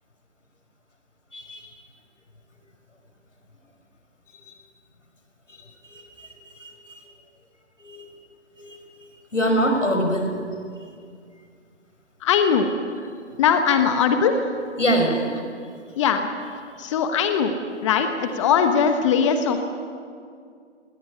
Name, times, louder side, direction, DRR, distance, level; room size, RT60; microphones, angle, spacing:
voice 1, 1.3-1.7 4.5-4.6 5.9-6.3 6.6-7.0 7.8-8.0 8.6-10.3 14.8-15.4, equal, 85° left, 4 dB, 5.9 m, -25 dB
voice 2, 12.2-13.1 13.4-14.4 16.0-16.3 16.8-17.5 17.8-19.7, left 6 dB, 25° left, 7 dB, 1.3 m, -20 dB
19.5 x 18.5 x 9.9 m, 2.2 s
figure-of-eight pair, 140°, 36 cm